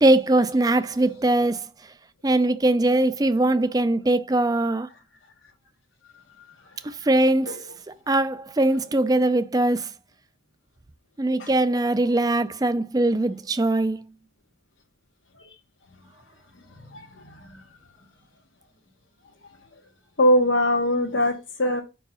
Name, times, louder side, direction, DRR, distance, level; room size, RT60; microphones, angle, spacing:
voice 1, 0.0-1.7 2.2-4.9 6.8-7.6 8.1-9.9 11.2-14.0, right 2 dB, 20° right, 0.4 m, -21 dB
voice 2, 20.2-21.8, left 1 dB, 75° left, 1.1 m, -21 dB
5.2 x 4.7 x 5.6 m
head